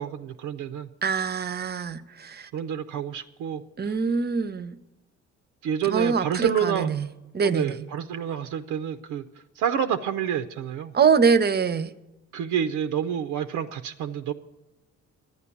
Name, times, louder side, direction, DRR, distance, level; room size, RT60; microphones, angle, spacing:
voice 1, 0.0-0.9 2.5-3.9 5.6-6.9 7.4-9.2 9.6-10.9 12.3-14.3, right 8 dB, 90° right, 0.6 m, -28 dB
voice 2, 1.0-2.5 3.8-4.8 5.8-7.1 7.3-7.8 10.9-11.9, right 5 dB, 35° right, 0.7 m, -24 dB
11.0 x 9.4 x 7.1 m
cardioid pair, 90°, 30 cm